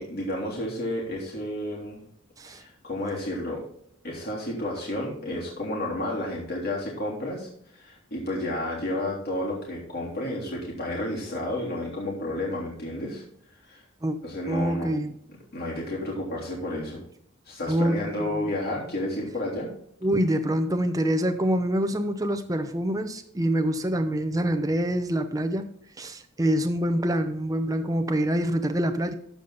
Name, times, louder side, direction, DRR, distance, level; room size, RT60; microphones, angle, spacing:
voice 1, 0.0-2.0 2.4-3.6 4.0-13.2 13.7-13.8 14.2-14.9 15.5-17.0 17.4-19.7, left 1 dB, 50° left, -4 dB, 3.4 m, -31 dB
voice 2, 14.5-15.1 17.7-18.4 20.0-25.6 26.0-29.1, right 1 dB, 20° right, 6 dB, 0.7 m, -26 dB
13.5 x 5.2 x 4.0 m, 0.67 s
head